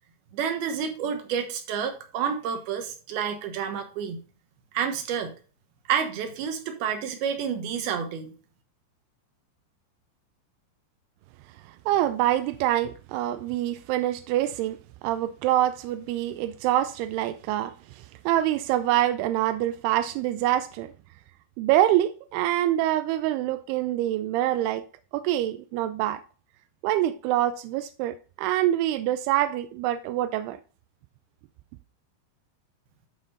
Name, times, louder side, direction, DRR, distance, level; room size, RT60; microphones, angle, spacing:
voice 1, 0.3-4.2 4.7-5.3 5.9-8.3, right 7 dB, 70° right, 2.9 m, -29 dB
voice 2, 11.9-14.8 15.0-20.9 21.6-24.8 25.1-26.2 26.8-30.6, right 13 dB, 85° right, 2.3 m, -25 dB
11.5 x 4.3 x 3.9 m
omnidirectional pair, 5.0 m